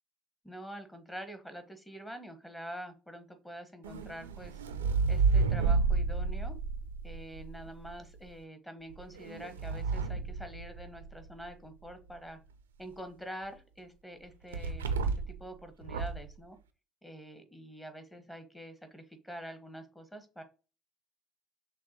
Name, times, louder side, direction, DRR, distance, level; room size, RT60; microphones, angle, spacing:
voice 1, 0.4-4.6 5.1-6.5 7.0-12.4 12.8-16.6 17.0-20.4, equal, 10° left, 8 dB, 1.1 m, -46 dB
sound 1, 3.8-7.9 8.9-11.2 14.5-15.4 15.8-16.3, right 4 dB, 80° right, 0.4 m, -31 dB
5.9 x 2.2 x 2.8 m, 0.33 s
figure-of-eight pair, 55°, 0 cm